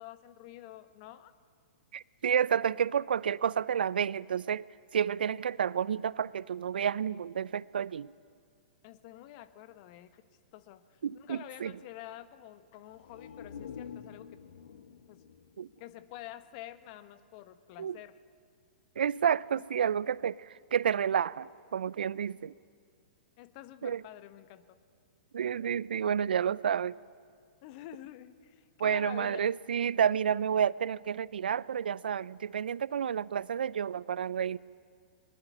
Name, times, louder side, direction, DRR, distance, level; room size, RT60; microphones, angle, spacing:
voice 1, 0.0-1.3 8.8-14.4 15.1-15.2 15.8-18.2 23.4-24.8 27.6-29.5, left 14 dB, 45° left, 12 dB, 1.4 m, -48 dB
voice 2, 1.9-4.7 4.9-8.1 11.0-11.7 15.6-15.7 17.8-18.0 19.0-22.5 23.8-24.0 25.3-27.0 28.8-34.6, right 8 dB, 70° right, 21 dB, 0.5 m, -30 dB
sound 1, 12.9-16.6 17.0-17.1, left 7 dB, 70° left, 1.3 m, -48 dB
21.5 x 21.0 x 9.7 m, 2.2 s
hypercardioid pair, 115°, 5 cm